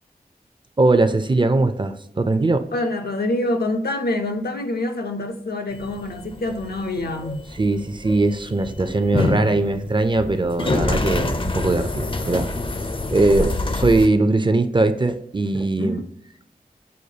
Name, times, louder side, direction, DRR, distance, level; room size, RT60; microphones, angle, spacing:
voice 1, 0.8-2.7 7.5-12.5 13.1-16.0, right 2 dB, 30° right, 0.4 m, -20 dB
voice 2, 2.7-7.5 13.2-13.5 15.8-16.1, left 1 dB, 80° left, 0.6 m, -26 dB
sound 1, 5.7-14.1, left 2 dB, 30° left, 0.4 m, -26 dB
6.3 x 2.3 x 2.7 m
wide cardioid pair, 50°, 16 cm